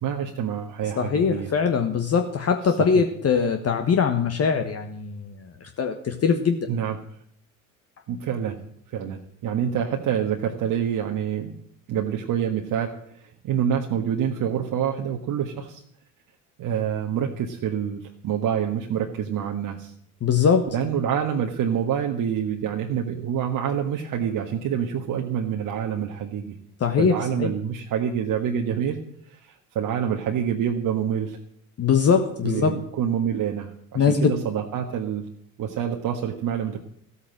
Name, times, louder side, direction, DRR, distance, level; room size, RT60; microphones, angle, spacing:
voice 1, 0.0-1.5 2.7-3.0 6.7-7.0 8.1-8.6 8.9-11.5 11.9-15.8 16.6-19.9 20.7-26.6 27.0-29.0 29.3-31.4 32.4-35.2 35.6-36.8, right 8 dB, 50° right, 3 dB, 1.5 m, -27 dB
voice 2, 1.0-6.6 20.2-20.7 26.8-27.5 31.8-32.7 33.9-34.4, left 6 dB, 35° left, 6 dB, 1.4 m, -22 dB
14.0 x 8.5 x 7.5 m, 0.68 s
hypercardioid pair, 70°, 42 cm